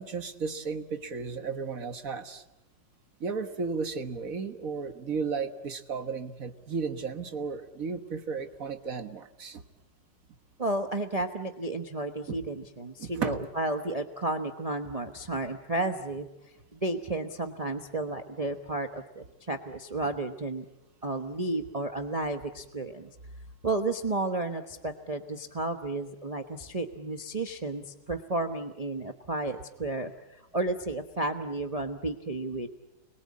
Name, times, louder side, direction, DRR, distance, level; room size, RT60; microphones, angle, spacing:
voice 1, 0.0-2.4 3.2-9.6 12.3-12.4 13.0-13.4, right 5 dB, 50° right, 8 dB, 1.7 m, -34 dB
voice 2, 10.6-16.3 16.7-20.6 21.0-23.1 23.6-32.7, right 2 dB, 25° right, 6 dB, 1.0 m, -32 dB
29.5 x 22.0 x 8.5 m, 0.93 s
omnidirectional pair, 2.1 m